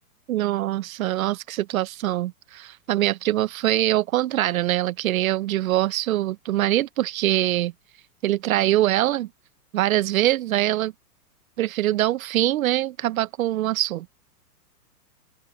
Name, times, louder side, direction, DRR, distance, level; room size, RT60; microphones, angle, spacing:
voice 1, 0.3-7.7 8.2-9.3 9.7-10.9 11.6-14.1, right 14 dB, 60° right, 1.1 m, -23 dB
open air
hypercardioid pair, 125°, 47 cm